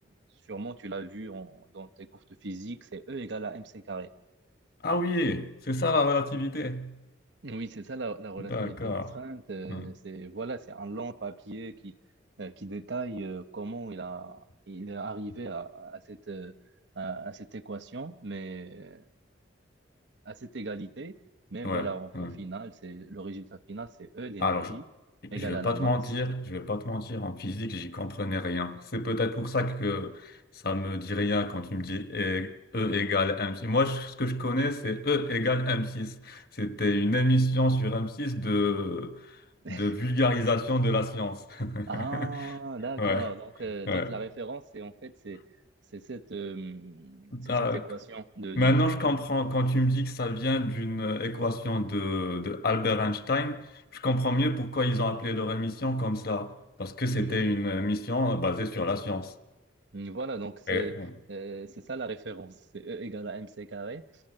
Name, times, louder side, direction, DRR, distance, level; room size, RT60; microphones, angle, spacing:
voice 1, 0.5-2.1 2.4-4.1 7.4-12.0 12.4-16.5 16.9-19.0 20.2-21.2 21.5-24.8 25.3-26.0 34.6-34.7 39.6-39.9 41.9-45.4 45.9-49.1 57.1-57.5 59.9-60.9 61.3-64.0, right 3 dB, 60° right, 0.9 m, -38 dB
voice 2, 4.8-7.0 8.5-9.1 9.7-9.8 21.6-21.9 22.1-22.3 24.4-24.7 25.2-30.4 30.6-39.2 39.7-42.5 43.0-43.3 43.9-44.1 47.3-47.8 48.6-53.7 53.9-59.3 60.7-61.1, left 1 dB, 50° left, 1.1 m, -28 dB
30.0 x 25.0 x 7.8 m
head